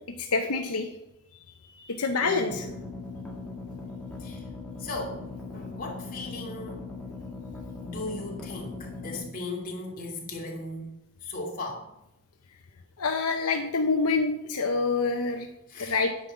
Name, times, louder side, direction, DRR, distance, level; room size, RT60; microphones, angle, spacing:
voice 1, 0.3-0.9 1.7-2.6 13.0-15.5 15.8-16.1, left 4 dB, 80° left, 4 dB, 0.8 m, -26 dB
voice 2, 2.2-2.8 4.2-4.4 4.8-5.2 5.5-6.9 7.8-10.9 11.2-11.9 15.7-16.0, left 2 dB, 40° left, -2 dB, 2.8 m, -37 dB
sound 1, 2.5-9.3, left 3 dB, 5° left, 1.8 m, -39 dB
9.8 x 5.4 x 8.3 m, 0.88 s
head